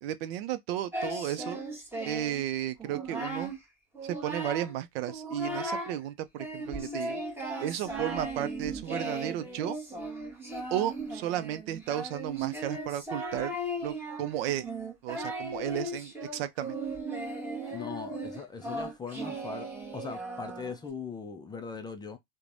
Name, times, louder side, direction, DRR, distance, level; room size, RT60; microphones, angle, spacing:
voice 1, 0.0-1.6 2.0-3.5 4.0-7.2 7.6-9.8 10.7-13.6 13.8-14.7 15.0-16.8, right 11 dB, 75° right, 0.5 m, -33 dB
Singing, 0.9-2.4 2.8-3.6 3.9-4.8 5.1-6.0 6.4-20.9, right 1 dB, 5° right, 1.0 m, -37 dB
voice 2, 17.7-19.7 19.9-22.2, left 5 dB, 15° left, 0.3 m, -40 dB
3.1 x 2.2 x 2.5 m
supercardioid pair, 115°, 30 cm